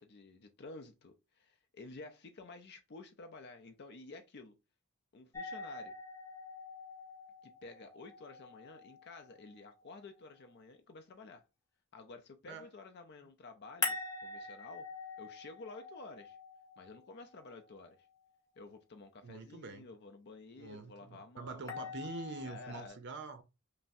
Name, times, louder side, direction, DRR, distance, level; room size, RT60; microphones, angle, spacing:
voice 1, 0.0-4.5 5.1-5.9 7.4-11.4 11.9-14.9 15.2-16.4 16.8-18.1 18.6-21.9 22.4-23.0, left 3 dB, 50° left, 0.5 m, -52 dB
sound 1, 5.3-10.3 13.8-17.9 21.7-22.9, left 4 dB, 15° left, 0.8 m, -44 dB
voice 2, 19.2-19.9 20.6-23.4, right 3 dB, 55° right, 0.5 m, -45 dB
5.4 x 2.0 x 2.6 m
head